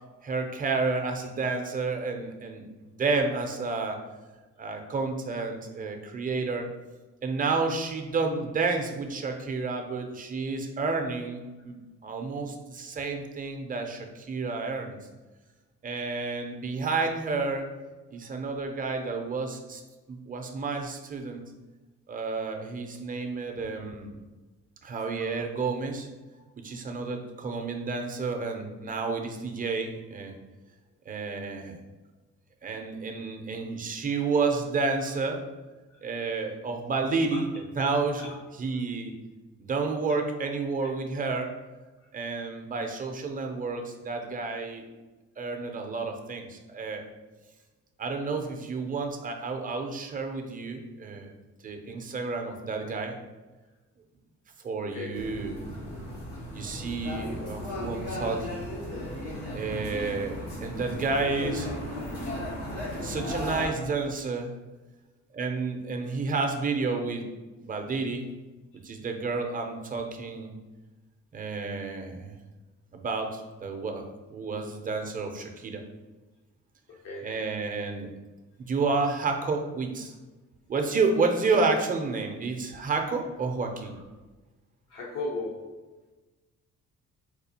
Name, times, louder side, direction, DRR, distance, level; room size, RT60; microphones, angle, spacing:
voice 1, 0.2-2.6 3.0-4.0 4.6-6.7 7.2-15.0 15.8-17.7 18.1-19.8 20.1-21.4 22.1-24.1 24.8-26.1 26.6-30.4 31.1-31.8 32.6-35.4 36.0-39.1 39.6-41.5 42.1-44.8 45.4-47.0 48.0-51.3 51.6-53.2 54.6-55.6 56.5-58.6 59.5-61.7 63.0-64.5 65.3-67.3 67.6-68.2 68.8-70.5 71.3-72.4 72.9-74.1 74.3-75.8 77.2-78.1 78.6-80.1 80.7-84.0, right 4 dB, 30° right, 4 dB, 0.5 m, -30 dB
sound 1, 55.1-63.7, left 1 dB, 90° left, 1.4 m, -35 dB
voice 2, 77.0-77.4 84.9-85.9, left 2 dB, 60° left, -3 dB, 0.7 m, -37 dB
4.2 x 2.3 x 2.7 m, 1.2 s
cardioid pair, 90°, 30 cm